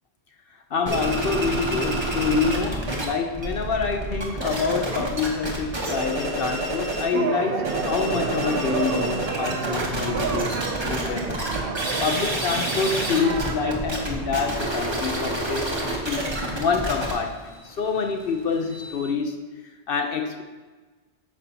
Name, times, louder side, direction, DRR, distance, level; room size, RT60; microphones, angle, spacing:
voice 1, 0.7-11.4 12.0-19.4 19.9-20.4, left 5 dB, 60° left, 5 dB, 0.8 m, -27 dB
sound 1, 0.9-3.1 3.3-7.1 7.5-19.1, right 1 dB, 25° right, 1.1 m, -28 dB
sound 2, 7.1-13.8, right 6 dB, 60° right, 0.7 m, -30 dB
9.0 x 6.2 x 2.8 m, 1.3 s
omnidirectional pair, 1.2 m